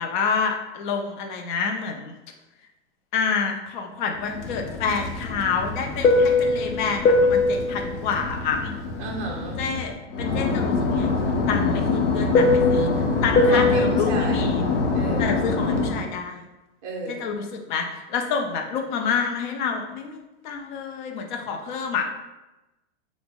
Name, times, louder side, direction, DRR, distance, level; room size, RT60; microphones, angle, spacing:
voice 1, 0.0-2.1 3.1-8.7 9.6-9.9 10.2-14.6 15.2-16.4 17.1-22.1, left 5 dB, 45° left, 3 dB, 0.4 m, -28 dB
Fixed-wing aircraft airplane, 4.4-9.8 10.2-16.0, left 3 dB, 75° left, 0.7 m, -21 dB
voice 2, 9.0-9.6 13.5-14.5 14.9-15.2 16.8-17.2, right 3 dB, 20° right, -2 dB, 0.5 m, -32 dB
3.3 x 2.0 x 3.5 m, 1.0 s
supercardioid pair, 160°, 36 cm